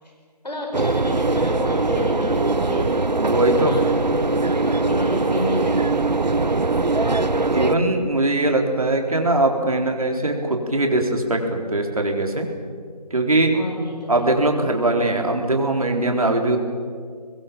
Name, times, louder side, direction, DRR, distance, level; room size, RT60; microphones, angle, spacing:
voice 1, 0.4-2.9 3.3-6.0 13.5-14.3, left 1 dB, 85° left, 1 dB, 5.4 m, -31 dB
sound 1, 0.7-7.8, right 3 dB, 90° right, 1.3 m, -21 dB
voice 2, 3.1-3.8 7.5-12.5 13.1-13.5 14.1-16.6, right 2 dB, 55° right, 3 dB, 4.1 m, -21 dB
27.0 x 21.5 x 7.2 m, 2.1 s
figure-of-eight pair, 175°, 21 cm